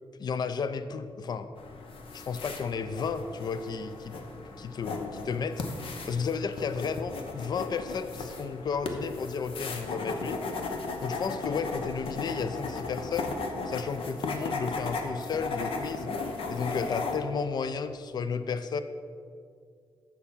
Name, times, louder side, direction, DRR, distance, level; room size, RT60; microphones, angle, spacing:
voice 1, 0.2-1.5 2.1-4.1 4.6-5.6 6.1-10.4 11.0-13.3 13.7-16.1 16.5-18.8, left 5 dB, 45° left, 11 dB, 0.4 m, -33 dB
sound 1, 1.6-17.2, left 3 dB, 70° left, 0.9 m, -36 dB
7.0 x 6.6 x 5.6 m, 2.2 s
wide cardioid pair, 125°, 10 cm